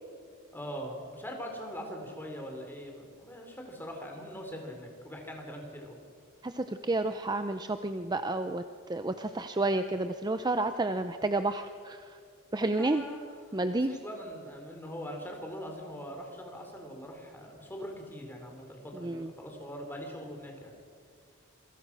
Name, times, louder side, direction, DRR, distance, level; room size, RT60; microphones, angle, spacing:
voice 1, 0.5-6.0 12.8-13.2 13.9-20.7, equal, 10° left, 2 dB, 4.4 m, -42 dB
voice 2, 6.4-8.6 8.9-12.2 12.5-13.1 13.5-14.0 18.9-19.3, right 2 dB, 20° right, 8 dB, 0.7 m, -30 dB
27.5 x 22.5 x 6.3 m, 2.3 s
head